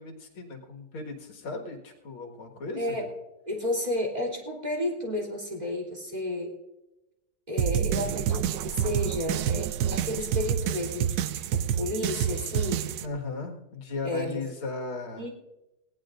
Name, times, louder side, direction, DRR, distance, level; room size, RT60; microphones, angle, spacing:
voice 1, 0.0-3.1 13.0-15.2, left 3 dB, 85° left, 2 dB, 2.7 m, -37 dB
voice 2, 3.5-6.5 7.5-12.8 14.0-14.4 15.2-15.3, left 1 dB, 20° right, -1 dB, 3.2 m, -32 dB
sound 1, 7.6-13.1, right 10 dB, 75° right, 0.9 m, -28 dB
19.5 x 17.0 x 2.5 m, 0.97 s
omnidirectional pair, 2.2 m